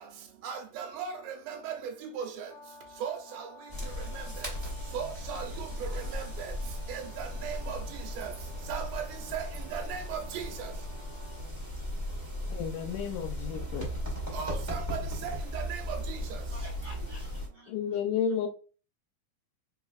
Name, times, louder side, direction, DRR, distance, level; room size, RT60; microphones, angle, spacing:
voice 1, 0.4-1.1 1.5-1.7 2.0-2.5 3.0-3.4 4.9-5.5 6.1-6.5 6.9-7.8 8.2-8.3 8.7-9.0 9.3-10.7 14.3-16.2, right 7 dB, 90° right, 2.6 m, -37 dB
Brass instrument, 2.5-11.5, left 4 dB, 40° left, 0.8 m, -54 dB
sound 1, 3.7-17.5, equal, 15° right, 1.0 m, -37 dB
sound 2, 8.0-14.5, right 4 dB, 55° right, 1.8 m, -59 dB
voice 2, 12.5-14.0 17.7-18.5, left 8 dB, 80° left, 2.0 m, -32 dB
voice 3, 16.0-18.5, right 1 dB, 70° right, 1.3 m, -51 dB
4.6 x 3.9 x 2.3 m
omnidirectional pair, 4.0 m